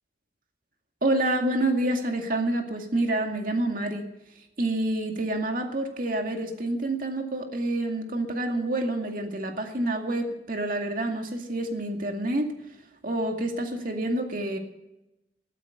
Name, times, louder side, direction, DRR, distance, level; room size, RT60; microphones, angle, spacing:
voice 1, 1.0-4.1 4.6-12.5 13.0-14.6, right 1 dB, 50° right, 4 dB, 2.2 m, -28 dB
14.5 x 12.5 x 6.7 m, 0.93 s
head